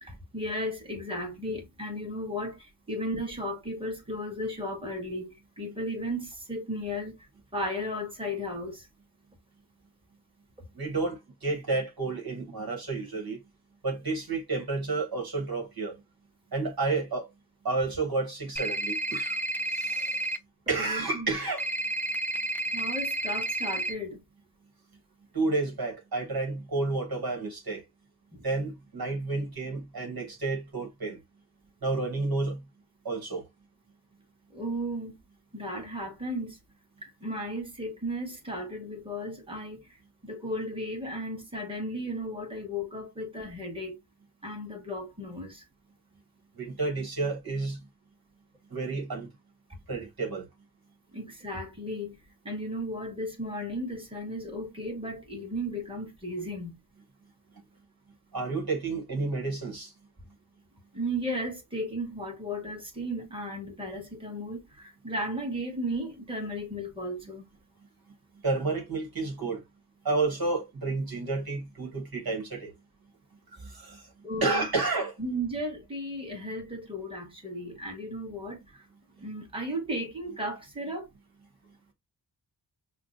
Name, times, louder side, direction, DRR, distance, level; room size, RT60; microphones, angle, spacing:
voice 1, 0.0-5.3 5.6-7.2 7.5-8.9 20.8-21.3 22.7-24.2 28.3-28.4 34.5-35.2 35.5-36.6 37.0-39.9 40.2-44.0 44.4-45.6 51.1-52.2 52.4-56.8 60.9-67.4 74.2-74.7 75.2-78.8 79.2-81.1, equal, 15° right, 1.6 m, -35 dB
voice 2, 10.8-13.4 13.8-15.9 16.5-17.3 17.6-19.4 19.7-20.2 20.7-21.6 25.3-27.8 28.4-31.2 31.8-32.6 33.0-33.4 46.6-47.8 48.7-49.3 49.9-50.5 58.3-59.9 68.4-69.6 70.0-72.7 73.6-74.1 74.4-75.1, right 3 dB, 60° right, 1.4 m, -30 dB
sound 1, 18.6-20.4 21.6-23.9, right 2 dB, 5° left, 0.6 m, -31 dB
5.7 x 2.2 x 2.6 m
wide cardioid pair, 65°, 41 cm